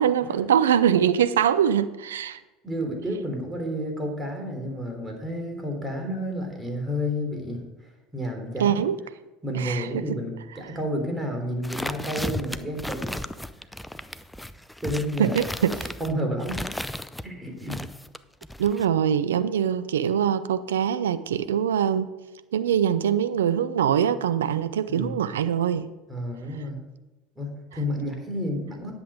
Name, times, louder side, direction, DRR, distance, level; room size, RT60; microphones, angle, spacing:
voice 1, 0.0-2.4 8.6-9.0 9.5-10.0 15.2-15.9 18.6-22.1 22.5-25.9, right 9 dB, 80° right, 13 dB, 0.5 m, -23 dB
voice 2, 2.6-8.8 9.4-13.2 13.6-13.7 14.8-15.4 16.0-16.9 17.2-17.8 24.9-25.2 26.1-26.8 27.4-28.9, equal, 15° right, 2 dB, 3.4 m, -31 dB
sound 1, 11.6-17.3 17.7-18.9, left 1 dB, 5° left, 0.5 m, -34 dB
10.5 x 7.7 x 5.0 m, 1.1 s
hypercardioid pair, 75°, 0 cm